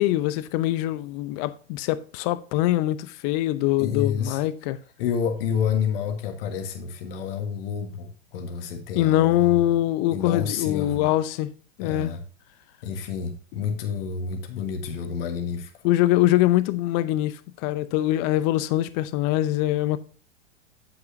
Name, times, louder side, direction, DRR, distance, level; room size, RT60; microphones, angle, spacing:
voice 1, 0.0-4.8 9.0-11.5 11.8-12.1 15.8-20.0, left 15 dB, 35° left, 0.6 m, -23 dB
voice 2, 3.8-4.4 5.0-9.8 10.1-11.1 11.8-12.2 12.8-15.7, left 7 dB, 55° left, 1.7 m, -29 dB
8.6 x 7.9 x 2.7 m
figure-of-eight pair, 105°, 35 cm